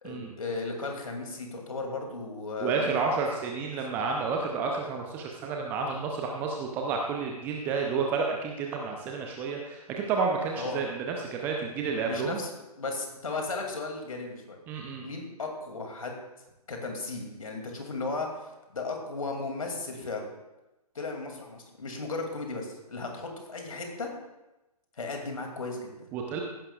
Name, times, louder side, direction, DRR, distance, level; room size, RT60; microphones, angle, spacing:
voice 1, 0.0-3.2 3.6-3.8 10.6-10.8 12.1-14.6 15.0-16.2 16.7-20.3 20.9-24.1 25.0-26.1, left 3 dB, 60° left, 2 dB, 2.4 m, -35 dB
voice 2, 2.6-12.4 14.7-15.0 26.1-26.4, right 4 dB, 10° right, 1 dB, 0.5 m, -30 dB
15.0 x 11.0 x 2.3 m, 1.0 s
figure-of-eight pair, 140°, 20 cm